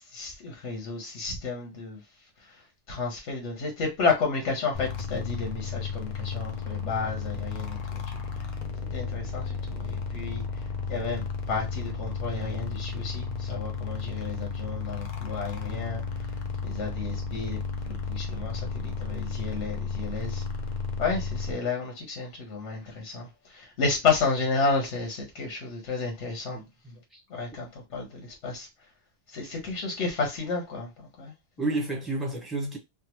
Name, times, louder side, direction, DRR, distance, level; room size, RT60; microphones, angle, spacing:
voice 1, 0.1-2.0 2.9-8.0 8.9-10.4 10.9-11.2 11.5-16.0 16.6-17.6 17.9-20.4 21.0-23.3 23.5-26.6 27.3-28.7 29.3-30.9 31.2-31.3, left 4 dB, 80° left, 1.2 m, -31 dB
sound 1, 4.7-21.5, left 5 dB, 50° left, 0.6 m, -33 dB
voice 2, 26.5-27.2 31.6-32.8, right 2 dB, ahead, 0.9 m, -31 dB
3.4 x 2.1 x 2.9 m
omnidirectional pair, 1.2 m